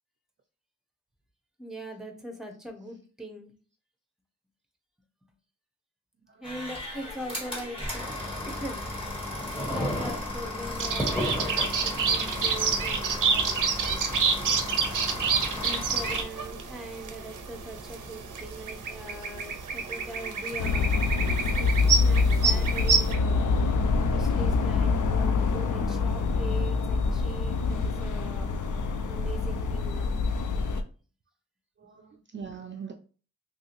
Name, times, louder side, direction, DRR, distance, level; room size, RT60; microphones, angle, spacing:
voice 1, 1.6-3.5 6.4-8.1 8.5-8.8 9.6-13.6 15.5-21.1 21.5-23.5 23.8-28.5 29.1-30.1, right 1 dB, ahead, 4 dB, 0.7 m, -41 dB
voice 2, 6.2-6.6 19.7-19.9 31.8-32.9, right 6 dB, 40° right, 3 dB, 0.4 m, -43 dB
sound 1, 6.4-16.2, left 1 dB, 20° left, 1.6 m, -34 dB
sound 2, 10.8-23.2, right 5 dB, 90° right, 0.5 m, -28 dB
sound 3, 20.6-30.8, left 4 dB, 80° left, 0.5 m, -25 dB
3.1 x 2.7 x 2.9 m, 0.38 s
wide cardioid pair, 70°, 31 cm